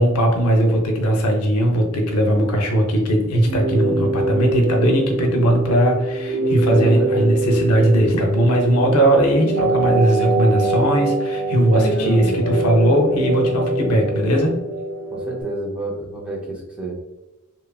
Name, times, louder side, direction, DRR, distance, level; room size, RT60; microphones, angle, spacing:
voice 1, 0.0-14.6, right 1 dB, 85° left, 2 dB, 0.6 m, -18 dB
sound 1, 3.4-15.4, right 2 dB, 80° right, 0.5 m, -24 dB
voice 2, 6.6-7.4 11.7-12.4 15.1-16.9, right 2 dB, 5° right, -2 dB, 0.4 m, -28 dB
2.9 x 2.3 x 2.3 m, 1.0 s
head